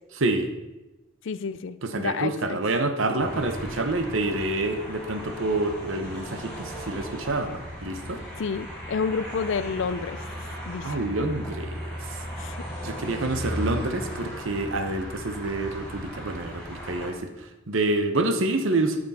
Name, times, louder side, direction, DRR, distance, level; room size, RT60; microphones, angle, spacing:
voice 1, 0.2-0.5 1.8-8.2 10.8-11.9 12.8-19.0, right 2 dB, 65° right, 7 dB, 1.0 m, -27 dB
voice 2, 1.2-2.6 8.4-10.2 10.7-11.0 12.4-12.6, left 5 dB, 60° left, 14 dB, 0.4 m, -29 dB
sound 1, 3.2-17.1, equal, 5° left, 3.3 m, -36 dB
13.0 x 6.2 x 4.2 m, 1.1 s
head